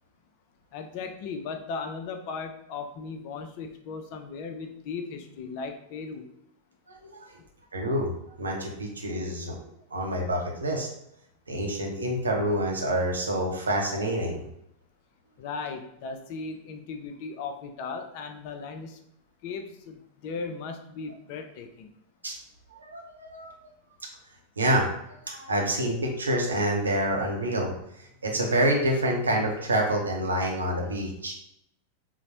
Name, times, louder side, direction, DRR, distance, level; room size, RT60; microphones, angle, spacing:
voice 1, 0.7-6.3 15.4-19.0 19.4-21.9, left 4 dB, 45° left, 6 dB, 0.4 m, -37 dB
voice 2, 7.7-8.1 8.4-9.6 9.9-10.9 11.5-14.4 22.2-22.4 22.8-23.5 24.6-24.9 25.3-27.7 28.2-31.3, right 1 dB, 75° right, 0 dB, 0.7 m, -27 dB
3.9 x 2.1 x 2.8 m, 0.76 s
figure-of-eight pair, 90°, 0 cm